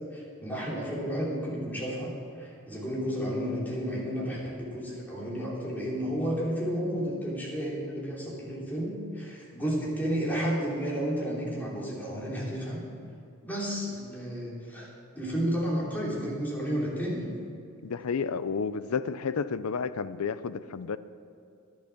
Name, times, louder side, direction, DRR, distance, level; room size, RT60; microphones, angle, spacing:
voice 1, 0.1-2.1 2.4-12.8 13.4-14.9 15.1-17.3, equal, 10° left, -6 dB, 3.2 m, -32 dB
voice 2, 17.8-21.0, left 5 dB, 75° left, 14 dB, 0.5 m, -31 dB
11.0 x 10.5 x 6.0 m, 2.6 s
head